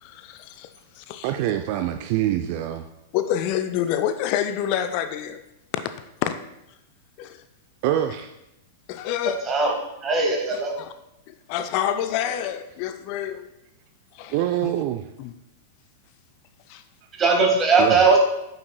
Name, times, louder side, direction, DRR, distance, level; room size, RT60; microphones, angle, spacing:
voice 1, 0.0-1.3 3.1-5.4 6.2-6.4 7.2-7.4 8.9-9.5 10.5-10.9 11.3-13.5 14.1-14.4 14.6-14.7 15.2-15.3 16.7-16.8, left 10 dB, 45° left, 10 dB, 0.3 m, -28 dB
voice 2, 1.2-2.8 7.8-8.3 14.3-15.0 17.8-18.0, right 12 dB, 50° right, 7 dB, 0.3 m, -25 dB
voice 3, 10.0-10.7 17.2-18.2, right 4 dB, 25° right, 0 dB, 1.7 m, -19 dB
9.0 x 5.5 x 2.3 m, 0.86 s
figure-of-eight pair, 95°, 0 cm